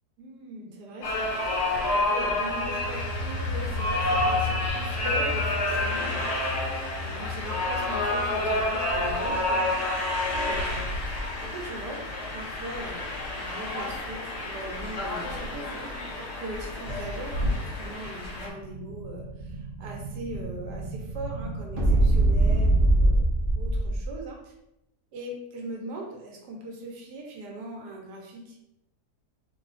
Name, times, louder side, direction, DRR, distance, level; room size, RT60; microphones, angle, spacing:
voice 1, 0.2-1.4 1.9-6.7 7.0-9.7 10.3-12.0 12.3-15.9 16.4-23.2 23.6-24.5 25.1-28.6, right 1 dB, 80° right, 0 dB, 1.3 m, -40 dB
sound 1, 1.0-18.5, left 1 dB, 55° left, 0.8 m, -29 dB
sound 2, 2.4-12.7 13.2-13.4, left 3 dB, 65° right, 0.8 m, -36 dB
Explosion, 18.1-24.1, right 2 dB, 30° right, 0.9 m, -25 dB
2.7 x 2.5 x 3.9 m, 0.85 s
omnidirectional pair, 1.8 m